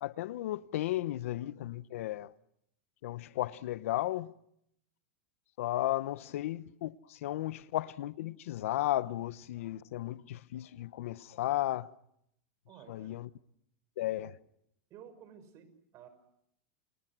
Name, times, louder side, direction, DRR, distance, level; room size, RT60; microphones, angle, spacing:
voice 1, 0.0-2.3 3.0-4.3 5.6-11.9 12.9-13.3 14.0-14.4, left 14 dB, 75° left, 1.0 m, -34 dB
voice 2, 12.7-13.1 14.2-14.3 14.9-16.1, right 8 dB, 40° right, 6.3 m, -53 dB
30.0 x 28.0 x 6.2 m
supercardioid pair, 130°, 7 cm